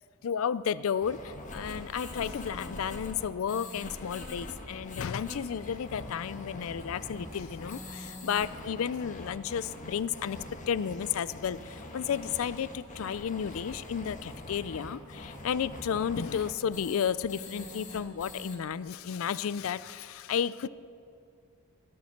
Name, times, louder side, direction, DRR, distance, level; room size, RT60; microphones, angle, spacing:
voice 1, 0.2-10.4 10.7-20.7, left 7 dB, 65° left, 17 dB, 0.4 m, -32 dB
sound 1, 1.0-18.6, left 2 dB, 35° left, 1.5 m, -43 dB
17.5 x 11.5 x 6.5 m, 2.5 s
head